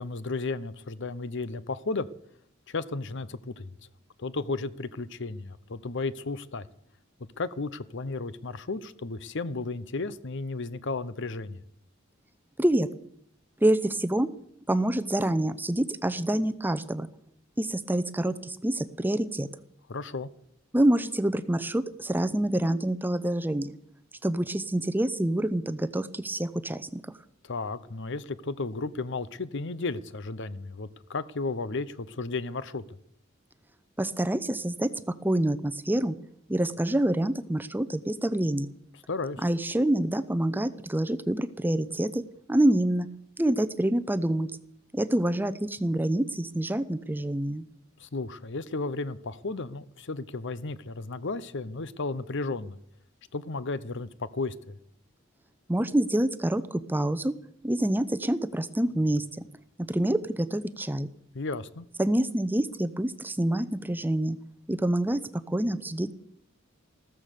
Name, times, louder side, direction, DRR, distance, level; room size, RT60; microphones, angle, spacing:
voice 1, 0.0-2.1 2.7-3.7 4.2-6.7 7.4-11.6 19.9-20.3 27.4-32.8 39.1-39.4 48.0-52.8 53.3-54.8 61.3-61.8, left 3 dB, 65° left, 16 dB, 0.8 m, -34 dB
voice 2, 12.6-12.9 13.6-14.3 14.7-17.1 17.6-19.5 20.7-23.8 24.2-27.0 34.0-36.2 36.5-38.7 39.4-43.1 43.4-44.5 44.9-47.7 55.7-57.3 57.6-59.4 59.8-61.1 62.0-64.4 64.7-66.1, right 1 dB, 10° right, 12 dB, 0.7 m, -27 dB
14.5 x 14.0 x 6.8 m, 0.67 s
head